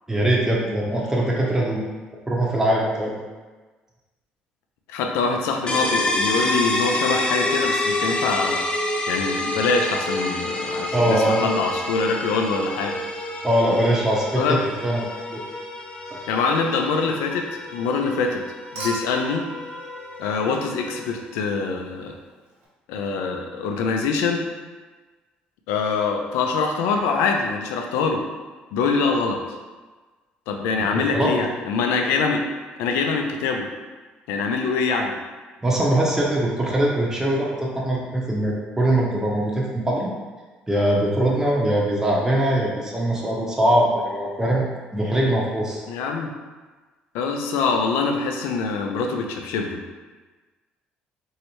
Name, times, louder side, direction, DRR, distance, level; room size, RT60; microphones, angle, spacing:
voice 1, 0.1-1.9 2.3-3.2 10.9-11.5 13.4-15.0 15.3-15.4 16.1-16.2 30.8-31.3 35.6-40.1 40.7-44.7 44.9-45.8, right 1 dB, 10° right, -3 dB, 0.7 m, -22 dB
voice 2, 4.9-8.6 9.1-13.0 14.4-14.6 16.3-17.5 17.7-18.4 18.7-19.4 20.2-22.1 22.9-24.5 25.7-28.2 28.7-29.4 30.5-32.4 32.8-33.7 34.3-35.2 45.9-46.3 47.1-49.8, left 4 dB, 75° left, 3 dB, 0.4 m, -24 dB
sound 1, 5.7-21.2, left 2 dB, 25° left, 0.5 m, -28 dB
Human group actions / Chink clink / Liquid, 18.8-21.1 22.6-22.7, right 2 dB, 75° right, 1.0 m, -36 dB
3.1 x 2.7 x 3.0 m, 1.3 s
hypercardioid pair, 60°, 4 cm